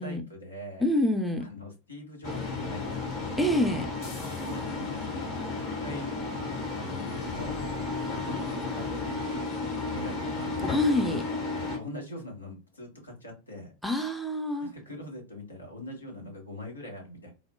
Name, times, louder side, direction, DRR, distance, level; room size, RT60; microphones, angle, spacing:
voice 1, 0.0-0.9 1.4-3.4 4.5-5.2 5.5-6.2 6.7-7.6 8.1-9.4 9.8-10.6 11.5-13.7 14.6-17.3, left 1 dB, 75° left, 1.1 m, -42 dB
voice 2, 0.8-1.4 3.4-3.9 10.7-11.2 13.8-14.7, left 1 dB, ahead, 0.5 m, -26 dB
sound 1, 2.2-11.8, left 3 dB, 40° left, 1.5 m, -33 dB
4.1 x 2.1 x 2.2 m
figure-of-eight pair, 90°, 0 cm